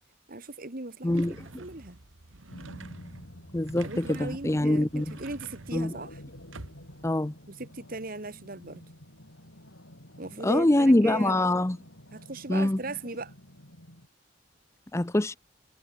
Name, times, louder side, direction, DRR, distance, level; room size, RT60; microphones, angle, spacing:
voice 1, 0.3-1.1 1.6-2.0 3.8-6.2 7.6-8.8 10.2-11.4 12.1-13.3, right 2 dB, 45° right, 1.9 m, -38 dB
voice 2, 1.0-1.4 3.5-5.2 5.7-5.9 7.0-7.3 10.4-11.8 12.5-12.8 14.9-15.4, left 1 dB, 15° left, 0.5 m, -24 dB
sound 1, 1.1-7.1, right 2 dB, 85° right, 2.2 m, -47 dB
sound 2, 2.5-14.1, equal, 75° left, 7.6 m, -50 dB
head